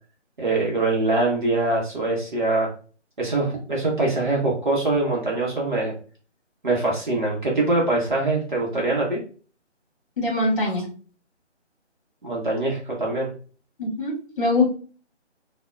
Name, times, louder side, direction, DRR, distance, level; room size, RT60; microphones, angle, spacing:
voice 1, 0.4-2.7 3.2-5.9 6.6-9.2 12.2-13.3, right 2 dB, 40° right, -3 dB, 0.8 m, -23 dB
voice 2, 10.2-10.9 13.8-14.6, left 2 dB, 25° left, -2 dB, 1.1 m, -23 dB
3.4 x 2.1 x 2.4 m, 0.39 s
figure-of-eight pair, 155°, 36 cm